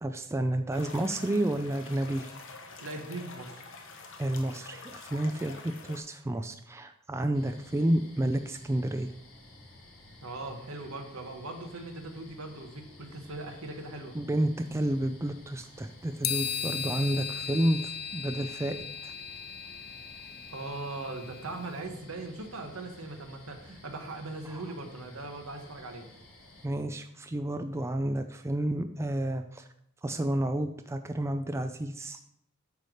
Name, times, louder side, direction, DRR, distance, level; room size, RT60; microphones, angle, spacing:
voice 1, 0.0-2.3 4.2-9.1 14.1-19.1 24.5-24.6 26.6-29.6 30.0-32.2, right 1 dB, 15° right, 7 dB, 0.3 m, -30 dB
sound 1, 0.7-6.0, left 4 dB, 65° left, 1.0 m, -46 dB
voice 2, 2.8-3.6 10.2-14.2 20.5-26.1, right 2 dB, 70° right, 4 dB, 1.1 m, -40 dB
sound 2, 7.3-26.7, left 1 dB, 80° left, 2.8 m, -53 dB
sound 3, 16.2-21.5, left 8 dB, 50° left, 0.5 m, -37 dB
8.3 x 3.4 x 6.3 m, 0.71 s
head